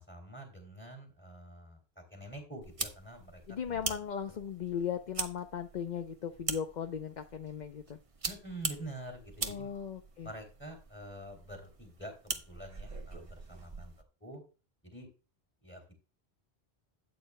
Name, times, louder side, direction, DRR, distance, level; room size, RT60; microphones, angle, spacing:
voice 1, 0.0-3.4 3.7-4.0 8.3-9.7 10.2-13.9 14.2-14.4 14.8-15.1 15.6-15.9, right 1 dB, 10° left, 4 dB, 2.7 m, -47 dB
sound 1, 2.6-14.0, right 4 dB, 35° right, 0.8 m, -42 dB
voice 2, 3.5-8.0 9.4-10.3, left 8 dB, 50° left, 8 dB, 0.7 m, -37 dB
13.0 x 8.5 x 2.2 m, 0.32 s
omnidirectional pair, 1.1 m